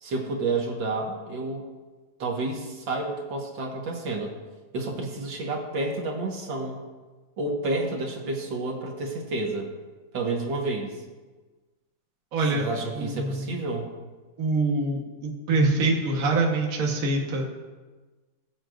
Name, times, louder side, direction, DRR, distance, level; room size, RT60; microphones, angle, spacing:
voice 1, 0.0-1.6 2.2-4.3 4.7-6.8 7.4-9.7 10.1-11.0 12.5-13.9, right 2 dB, 70° right, 0 dB, 2.2 m, -30 dB
voice 2, 12.3-12.6 13.0-13.7 14.4-17.5, right 2 dB, 50° right, -1 dB, 1.7 m, -25 dB
21.0 x 8.2 x 2.6 m, 1.3 s
omnidirectional pair, 2.1 m